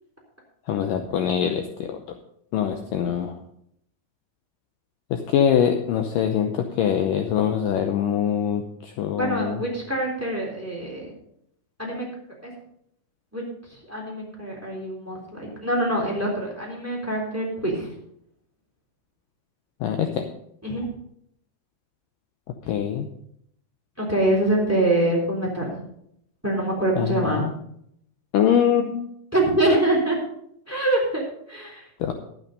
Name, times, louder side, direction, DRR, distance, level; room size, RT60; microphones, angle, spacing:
voice 1, 0.7-2.0 2.5-3.4 5.1-9.6 19.8-20.2 22.7-23.1 27.0-27.5 28.3-29.0 32.0-32.1, left 9 dB, 85° left, 5 dB, 1.9 m, -23 dB
voice 2, 9.2-11.1 11.8-12.1 12.4-12.5 13.3-13.4 13.7-17.9 20.6-20.9 24.0-25.8 26.4-27.4 29.3-30.2 30.7-31.8, right 1 dB, 5° right, -1 dB, 2.8 m, -24 dB
12.0 x 8.8 x 5.3 m, 0.72 s
omnidirectional pair, 4.9 m